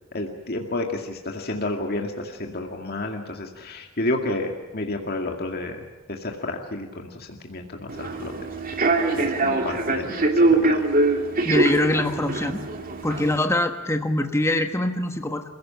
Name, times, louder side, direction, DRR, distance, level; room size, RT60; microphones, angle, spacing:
voice 1, 0.1-5.8 6.1-8.3 9.1-10.8, left 2 dB, 50° left, 2 dB, 2.2 m, -30 dB
Human voice / Subway metro underground, 7.9-13.4, right 2 dB, 45° right, 2.6 m, -23 dB
voice 2, 11.4-12.6 13.0-15.4, left 1 dB, 15° left, 5 dB, 1.3 m, -23 dB
28.0 x 16.5 x 8.8 m, 1.2 s
head